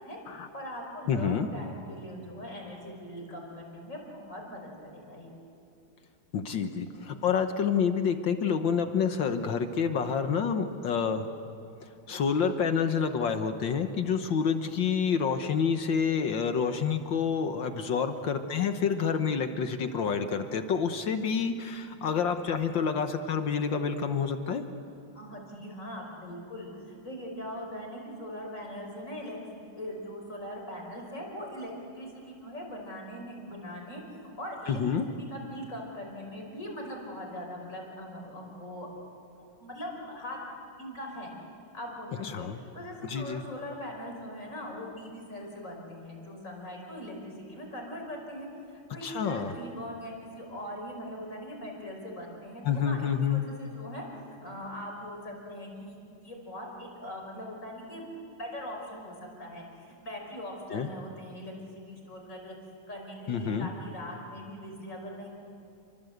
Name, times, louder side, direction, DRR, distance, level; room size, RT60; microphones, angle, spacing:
voice 1, 0.5-5.3 11.8-12.2 25.1-38.9 39.6-40.4 40.8-41.3 41.7-42.5 42.7-56.0 56.2-58.1 58.4-62.6 62.9-65.3, equal, 35° left, 0 dB, 5.6 m, -41 dB
voice 2, 1.1-1.5 6.3-11.3 11.8-24.6 34.7-35.1 42.2-42.6 43.0-43.4 49.0-49.6 52.6-53.4 60.7-60.9 63.3-63.7, left 6 dB, 65° left, 7 dB, 1.7 m, -28 dB
28.5 x 24.5 x 8.0 m, 2.6 s
omnidirectional pair, 2.3 m